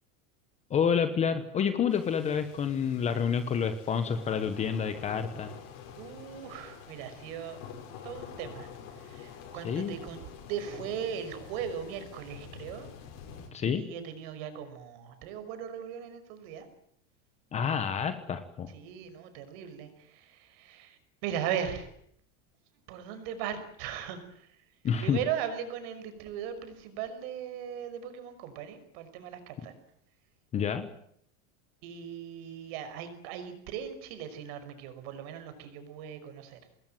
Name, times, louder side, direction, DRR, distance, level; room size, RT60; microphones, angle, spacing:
voice 1, 0.7-5.5 9.6-10.0 13.5-13.8 17.5-18.7 24.8-25.2 30.5-30.9, left 7 dB, 15° left, 10 dB, 1.2 m, -28 dB
sound 1, 1.9-13.5, left 7 dB, 45° left, 7.2 m, -47 dB
voice 2, 6.0-7.6 8.0-12.9 13.7-16.7 18.7-21.9 22.9-24.6 25.0-29.7 31.8-36.6, right 9 dB, 45° right, 9 dB, 5.6 m, -38 dB
26.5 x 20.5 x 9.3 m, 0.69 s
supercardioid pair, 175°, 40 cm